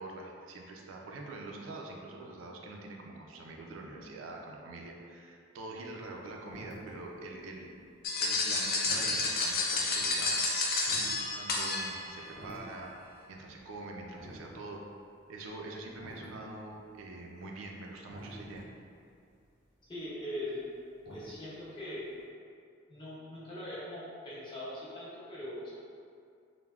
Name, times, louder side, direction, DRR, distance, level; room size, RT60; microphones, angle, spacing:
voice 1, 0.0-7.7 8.2-10.4 11.3-12.9 13.3-14.8 15.3-18.6, right 2 dB, 80° right, 0 dB, 0.3 m, -45 dB
sound 1, 6.0-6.2 6.5-7.1 7.5-13.0 13.2-13.3 13.6-14.6 14.8-14.9 15.1-15.2 15.8-16.4 16.7-20.7 21.0-21.6 21.9-22.0, equal, 80° left, 0.8 m, -49 dB
sound 2, 8.0-12.3, left 3 dB, 50° left, 0.4 m, -30 dB
voice 2, 19.9-20.6 21.1-22.0 22.9-25.7, left 1 dB, 25° left, -9 dB, 0.7 m, -41 dB
3.3 x 2.0 x 2.3 m, 2.4 s
head